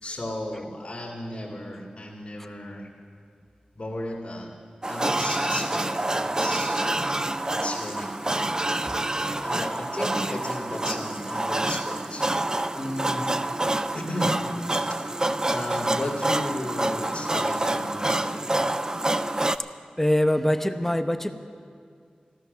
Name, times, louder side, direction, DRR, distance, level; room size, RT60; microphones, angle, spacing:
voice 1, 0.0-2.9 3.8-4.5 4.9-6.8 7.5-8.1 9.4-12.2 12.7-13.3 13.9-14.4 15.5-18.3, left 1 dB, 40° left, -2 dB, 2.3 m, -34 dB
sound 1, 4.8-19.6, right 1 dB, 25° right, 0.5 m, -27 dB
voice 2, 20.0-21.3, left 1 dB, 10° left, 8 dB, 0.9 m, -23 dB
14.0 x 13.5 x 6.7 m, 2.2 s
wide cardioid pair, 55°, 3 cm